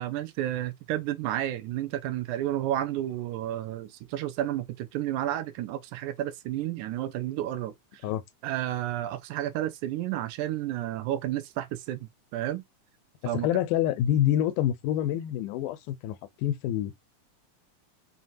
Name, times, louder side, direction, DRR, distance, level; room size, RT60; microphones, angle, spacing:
voice 1, 0.0-7.7 8.4-12.6 13.3-13.5, right 13 dB, 80° right, 2.0 m, -31 dB
voice 2, 13.3-17.0, left 11 dB, 85° left, 2.2 m, -27 dB
5.7 x 2.9 x 2.6 m
omnidirectional pair, 3.6 m